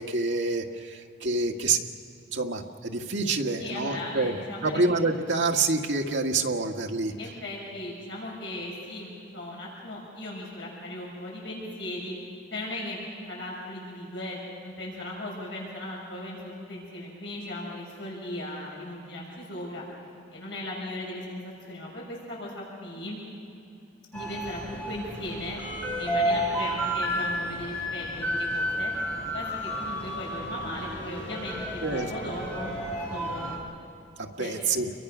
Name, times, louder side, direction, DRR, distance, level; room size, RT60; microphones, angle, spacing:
voice 1, 0.0-1.8 2.3-4.4 4.6-7.1 31.8-32.1 34.2-34.9, right 3 dB, 80° right, 2 dB, 1.7 m, -27 dB
voice 2, 3.6-4.8 7.1-12.1 12.5-19.8 20.3-23.2 24.1-25.6 26.0-28.9 29.3-33.6 34.4-34.5, left 1 dB, 75° left, -4 dB, 6.8 m, -37 dB
sound 1, 24.1-33.6, equal, 10° left, 5.6 m, -31 dB
29.5 x 23.0 x 6.1 m, 2.6 s
head